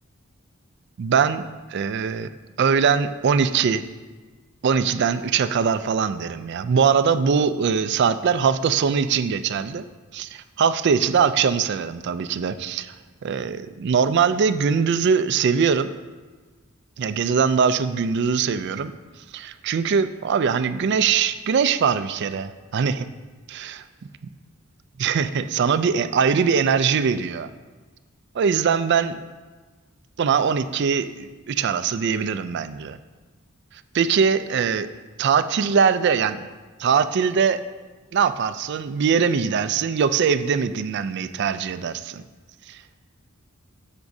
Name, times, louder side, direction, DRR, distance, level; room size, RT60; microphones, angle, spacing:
voice 1, 1.0-1.4 1.7-2.3 2.6-3.8 4.6-9.8 10.1-12.9 13.2-15.9 17.0-18.9 19.3-23.1 23.5-23.8 25.0-27.5 28.3-29.2 30.2-33.0 33.9-34.9 35.2-36.5 36.8-37.6 38.1-42.2 42.7-42.8, right 6 dB, 55° right, 12 dB, 0.3 m, -22 dB
9.5 x 7.1 x 2.7 m, 1.3 s
head